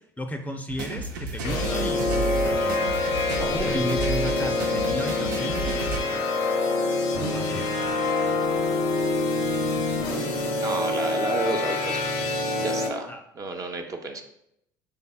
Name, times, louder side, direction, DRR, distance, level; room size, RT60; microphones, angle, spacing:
voice 1, 0.2-2.8 3.5-5.9 7.3-7.7 13.1-13.2, left 1 dB, 15° left, 4 dB, 0.5 m, -34 dB
sound 1, 0.7-6.0, right 3 dB, 80° right, 0.5 m, -32 dB
sound 2, 1.4-12.9, left 3 dB, 75° left, 0.8 m, -26 dB
voice 2, 3.3-3.7 6.1-6.2 10.0-10.3 10.6-14.2, right 3 dB, 35° right, 4 dB, 0.6 m, -33 dB
5.5 x 3.4 x 2.3 m, 0.77 s
hypercardioid pair, 65°, 10 cm